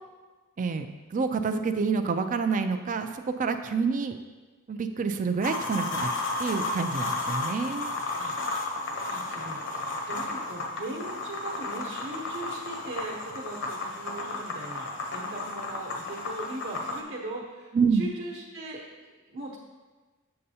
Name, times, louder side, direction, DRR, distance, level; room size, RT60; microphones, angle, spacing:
voice 1, 0.6-4.2 4.7-6.1 6.4-7.9 17.7-18.1, right 5 dB, 35° right, 8 dB, 0.4 m, -28 dB
sound 1, 5.4-17.0, left 2 dB, 60° left, 0.9 m, -33 dB
voice 2, 8.2-8.6 9.0-9.6 10.1-19.6, right 2 dB, 60° right, -2 dB, 1.0 m, -39 dB
7.6 x 6.6 x 2.8 m, 1.3 s
head